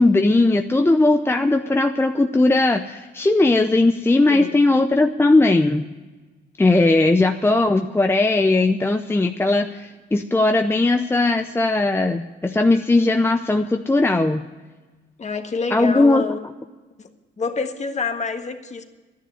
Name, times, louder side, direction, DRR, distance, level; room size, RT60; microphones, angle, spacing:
voice 1, 0.0-5.9 6.6-14.5 15.7-16.2, left 2 dB, 10° left, 6 dB, 0.6 m, -18 dB
voice 2, 15.2-16.4 17.0-17.1 17.4-18.8, left 4 dB, 35° left, 6 dB, 1.6 m, -27 dB
11.5 x 10.5 x 9.6 m, 1.3 s
cardioid pair, 90°, 20 cm